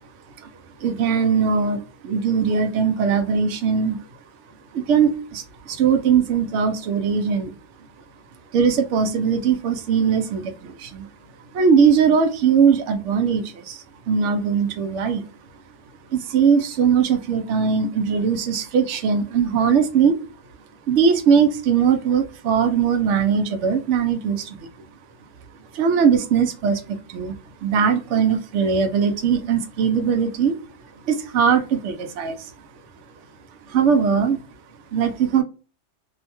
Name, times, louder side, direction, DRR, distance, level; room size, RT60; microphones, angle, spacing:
voice 1, 0.8-4.0 4.7-7.5 8.5-11.0 11.5-13.8 14.1-15.3 16.1-20.1 20.9-24.6 25.7-30.5 31.1-32.4 33.7-34.4 34.9-35.4, right 6 dB, 75° right, 7 dB, 0.9 m, -20 dB
2.6 x 2.1 x 2.8 m, 0.35 s
omnidirectional pair, 1.3 m